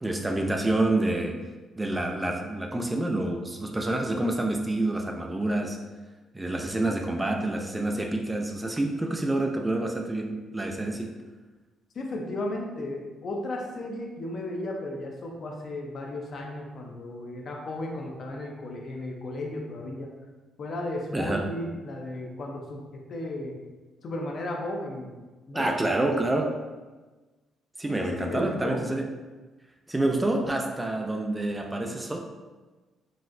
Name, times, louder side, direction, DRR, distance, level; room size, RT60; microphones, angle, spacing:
voice 1, 0.0-1.4 1.8-5.8 6.3-11.1 21.1-21.5 25.5-26.6 27.8-29.1 29.9-32.2, right 2 dB, 15° right, 3 dB, 0.3 m, -27 dB
voice 2, 11.9-20.1 20.6-23.6 24.0-25.7 28.0-28.8, left 1 dB, 55° left, 1 dB, 0.6 m, -35 dB
4.0 x 2.1 x 2.5 m, 1.2 s
cardioid pair, 90°, 0 cm